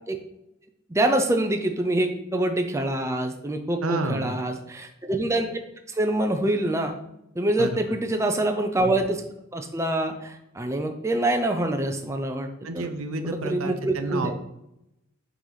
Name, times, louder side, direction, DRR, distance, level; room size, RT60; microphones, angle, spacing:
voice 1, 0.9-5.6 5.9-6.9 7.4-9.2 9.5-12.5 12.7-12.9 13.2-14.3, right 1 dB, 15° right, 4 dB, 0.5 m, -25 dB
voice 2, 3.8-4.4 7.6-7.8 12.6-14.4, right 2 dB, 80° right, 8 dB, 0.8 m, -30 dB
5.9 x 3.9 x 5.7 m, 0.83 s
head